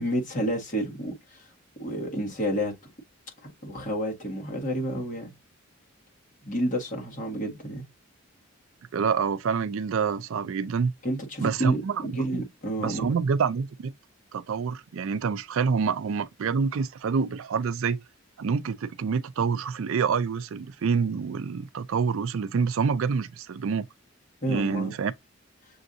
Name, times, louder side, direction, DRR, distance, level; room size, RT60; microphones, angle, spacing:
voice 1, 0.0-1.5 1.8-2.7 3.4-5.3 6.4-7.8 11.0-13.1 24.4-25.0, equal, 35° left, 1.6 m, -30 dB
voice 2, 8.9-10.9 11.4-12.4 12.8-13.9 14.3-18.0 18.4-23.9 24.5-25.1, right 5 dB, 70° right, 0.4 m, -27 dB
6.8 x 2.6 x 2.7 m
head